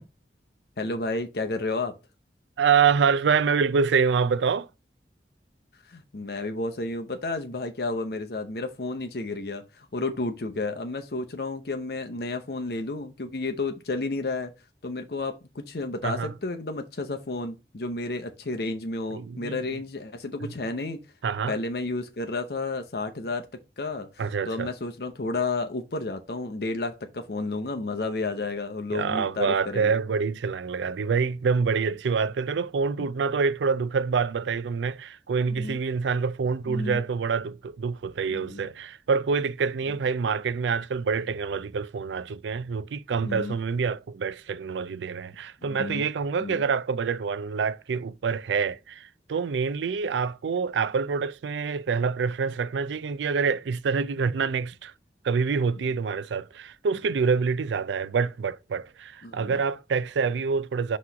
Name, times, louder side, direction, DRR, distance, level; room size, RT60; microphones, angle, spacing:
voice 1, 0.8-1.9 5.9-14.5 14.8-21.0 21.5-23.5 23.8-30.0 35.6-35.8 36.7-37.0 38.3-38.7 39.9-40.0 43.2-43.6 45.6-46.0 46.4-46.6 59.2-59.6, left 3 dB, 60° left, 0.7 m, -31 dB
voice 2, 2.6-4.7 16.0-16.3 19.1-19.6 20.4-20.5 21.2-21.5 24.2-24.7 28.9-54.9 55.2-61.0, right 5 dB, 90° right, 0.4 m, -26 dB
6.0 x 3.1 x 5.6 m
head